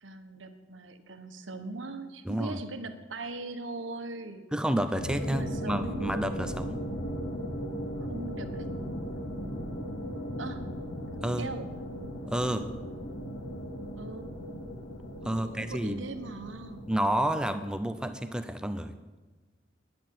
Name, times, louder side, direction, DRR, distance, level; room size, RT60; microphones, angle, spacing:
voice 1, 0.0-4.4 5.3-6.1 8.0-8.7 10.4-10.7 11.4-11.7 14.0-14.3 15.2-16.8, right 3 dB, 90° right, 7 dB, 1.3 m, -40 dB
voice 2, 2.3-2.6 4.5-6.8 11.2-11.5 12.3-12.7 15.2-16.0 16.9-18.9, right 1 dB, 5° right, 9 dB, 0.6 m, -30 dB
sound 1, 4.9-17.8, equal, 80° left, 2.7 m, -37 dB
10.5 x 10.0 x 7.6 m, 1.2 s
head